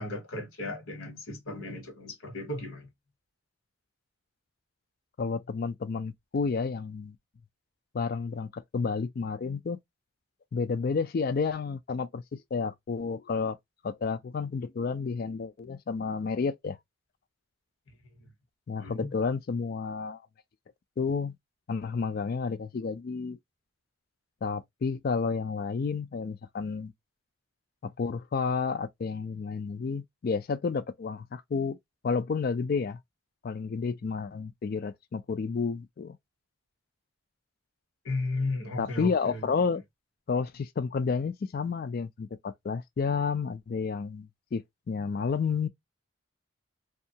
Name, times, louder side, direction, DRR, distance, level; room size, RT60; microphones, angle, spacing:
voice 1, 0.0-2.9 18.8-19.1 38.0-39.5, left 2 dB, 90° left, 1.2 m, -35 dB
voice 2, 5.2-7.2 7.9-9.8 10.5-13.6 13.8-16.8 18.7-20.2 21.0-21.4 21.7-23.4 24.4-26.9 27.8-31.8 32.0-33.0 33.4-36.2 38.8-39.8 40.3-45.7, left 5 dB, 45° left, 0.3 m, -31 dB
2.6 x 2.4 x 2.7 m
head